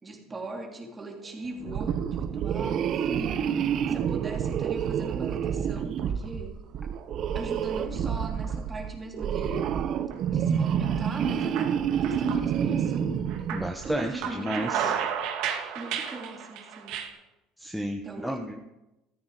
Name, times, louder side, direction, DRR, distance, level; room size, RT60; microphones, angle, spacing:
voice 1, 0.0-3.4 3.9-6.6 7.3-9.7 10.3-13.3 13.8-15.1 15.7-17.0 18.0-18.4, right 2 dB, 20° right, 1 dB, 3.2 m, -38 dB
sound 1, 1.2-1.9 2.4-3.0 3.4-4.0 4.3-4.4 5.3-6.4 6.7-7.8 8.2-8.3 9.2-9.7 10.1-10.3 10.6-13.0 13.3-17.1, right 8 dB, 65° right, 2.3 m, -34 dB
sound 2, 1.6-14.1, right 8 dB, 45° right, 0.9 m, -28 dB
voice 2, 3.2-3.6 13.5-14.9 17.6-18.6, equal, ahead, 3 dB, 1.2 m, -33 dB
14.0 x 14.0 x 5.1 m, 0.94 s
cardioid pair, 130°, 0 cm